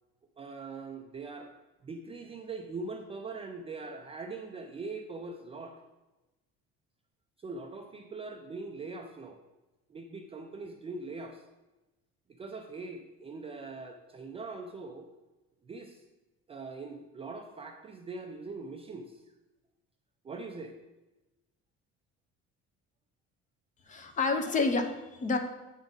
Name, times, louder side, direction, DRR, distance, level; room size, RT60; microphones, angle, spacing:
voice 1, 0.4-1.5 1.8-5.8 7.4-9.4 9.9-11.4 12.4-15.1 15.6-16.0 16.5-19.2 20.2-20.8, right 3 dB, 20° right, 3 dB, 0.4 m, -42 dB
voice 2, 23.9-25.4, left 3 dB, 25° left, 7 dB, 0.6 m, -29 dB
8.1 x 3.8 x 5.1 m, 1.1 s
cardioid pair, 160°, 29 cm